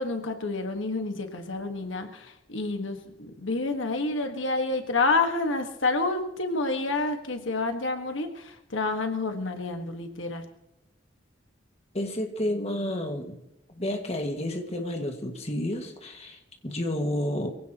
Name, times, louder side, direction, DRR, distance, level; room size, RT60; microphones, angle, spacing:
voice 1, 0.0-10.5, left 3 dB, 85° left, 6 dB, 1.7 m, -29 dB
voice 2, 11.9-13.4 13.7-17.5, left 1 dB, 35° left, 3 dB, 1.9 m, -30 dB
23.5 x 16.5 x 3.0 m, 0.85 s
head